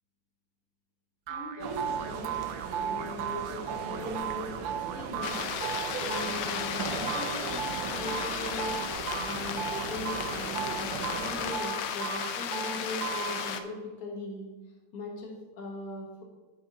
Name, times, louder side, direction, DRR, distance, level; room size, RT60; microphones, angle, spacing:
voice 1, 1.3-2.4 2.8-4.7 4.9-5.4 6.0-8.8 9.2-14.5 14.9-16.2, left 2 dB, 50° left, -1 dB, 2.0 m, -39 dB
sound 1, 1.3-13.8, right 9 dB, 65° right, 1.2 m, -37 dB
sound 2, 1.6-11.6, right 6 dB, 85° right, 1.5 m, -39 dB
sound 3, 5.2-13.6, left 9 dB, 70° left, 1.2 m, -35 dB
11.0 x 5.7 x 3.9 m, 1.2 s
omnidirectional pair, 2.1 m